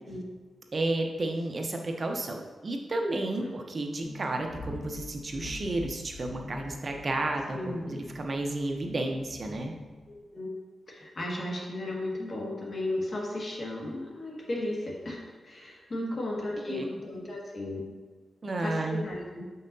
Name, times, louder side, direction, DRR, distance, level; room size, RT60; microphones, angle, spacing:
voice 1, 0.7-9.7 16.0-16.1 16.7-16.9 18.4-19.0, right 2 dB, 40° right, 3 dB, 0.7 m, -32 dB
sound 1, 4.0-10.2, left 2 dB, 85° left, 0.8 m, -44 dB
voice 2, 7.5-7.9 10.1-10.5 10.9-17.8 18.6-19.4, left 1 dB, 45° left, -3 dB, 1.7 m, -35 dB
7.4 x 5.5 x 2.7 m, 1.4 s
cardioid pair, 90°, 0 cm